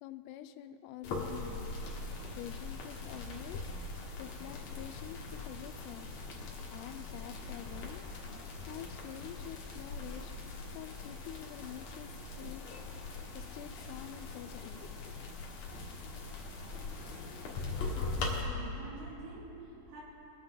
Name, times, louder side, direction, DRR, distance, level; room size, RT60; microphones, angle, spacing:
voice 1, 0.0-1.7 2.4-3.7 4.2-6.1 6.7-8.0 8.7-10.3 10.7-12.7 13.3-15.2, left 12 dB, 85° left, 9 dB, 2.6 m, -47 dB
sound 1, 1.0-18.4, left 3 dB, 60° left, 2.0 m, -41 dB
voice 2, 17.9-20.0, right 2 dB, 85° right, -5 dB, 4.4 m, -48 dB
23.5 x 8.8 x 3.9 m, 2.9 s
omnidirectional pair, 4.9 m